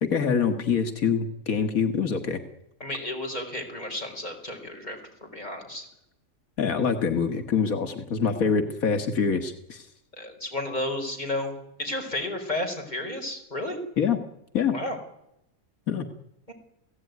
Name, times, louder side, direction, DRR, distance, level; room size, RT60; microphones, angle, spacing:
voice 1, 0.0-2.4 6.6-9.9 14.0-14.2 14.5-14.8 15.9-16.1, left 6 dB, 85° left, 7 dB, 2.1 m, -25 dB
voice 2, 2.8-5.9 10.2-13.8 14.7-15.0 16.5-16.6, left 1 dB, 30° left, 2 dB, 5.0 m, -32 dB
29.0 x 17.0 x 9.5 m, 0.84 s
omnidirectional pair, 1.4 m